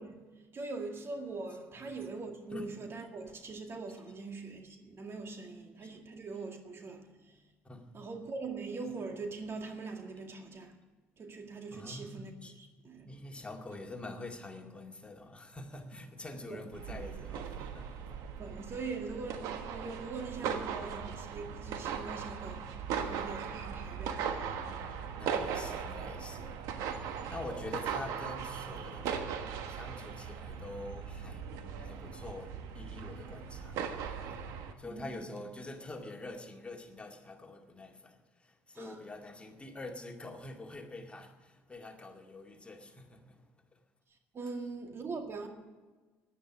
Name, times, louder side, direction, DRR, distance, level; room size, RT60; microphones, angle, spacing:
voice 1, 0.0-7.4 7.9-10.8 11.2-13.4 16.5-16.7 18.4-22.6 23.0-24.8 34.8-35.3 38.8-39.0 44.3-45.5, right 3 dB, 45° right, 2.0 m, -42 dB
voice 2, 1.5-1.9 2.5-2.7 5.8-5.9 7.6-7.9 11.7-12.5 13.1-18.2 24.5-43.8 44.6-44.7, left 2 dB, 20° left, 2.2 m, -46 dB
sound 1, 16.7-34.7, right 7 dB, 75° right, 1.3 m, -39 dB
10.0 x 10.0 x 9.8 m
hypercardioid pair, 65°, 6 cm